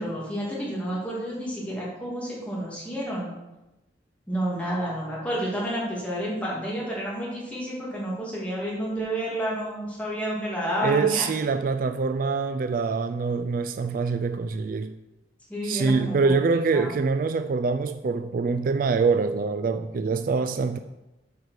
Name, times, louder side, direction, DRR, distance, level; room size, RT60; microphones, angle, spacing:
voice 1, 0.0-3.3 4.3-11.3 15.5-16.4 16.7-16.9, equal, 10° left, 2.4 m, -30 dB
voice 2, 10.8-14.9 15.6-20.8, right 4 dB, 50° right, 0.3 m, -24 dB
8.2 x 4.9 x 6.5 m
head